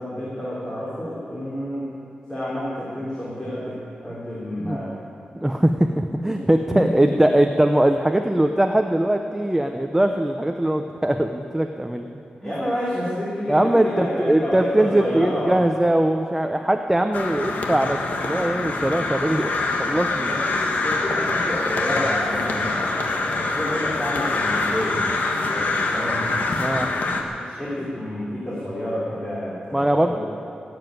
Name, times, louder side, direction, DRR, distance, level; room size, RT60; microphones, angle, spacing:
voice 1, 0.0-1.9 2.3-4.9 6.2-7.2 12.4-15.5 20.1-26.3 27.1-30.2, equal, 20° left, -9 dB, 3.7 m, -29 dB
voice 2, 5.3-12.1 12.4-12.5 13.5-20.4 26.6-26.9 29.7-30.2, right 1 dB, 10° right, 5 dB, 0.6 m, -21 dB
Crow, 17.1-27.2, left 3 dB, 70° left, 1.5 m, -25 dB
18.5 x 7.8 x 9.2 m, 2.6 s
wide cardioid pair, 125°, 3 cm